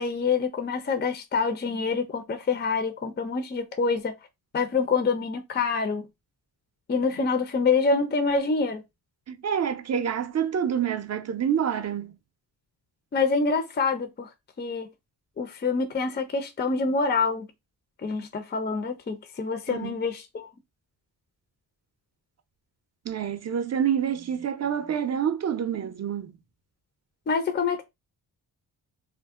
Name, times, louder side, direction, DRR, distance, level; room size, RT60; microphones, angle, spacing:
voice 1, 0.0-4.1 4.5-6.1 6.9-8.8 13.1-14.3 14.6-14.9 15.4-17.5 18.0-20.5 27.3-27.8, left 4 dB, 25° left, 0.5 m, -26 dB
voice 2, 9.3-12.2 19.7-20.0 23.0-26.3, right 8 dB, 40° right, 0.5 m, -27 dB
2.5 x 2.1 x 3.5 m
cardioid pair, 85°, 42 cm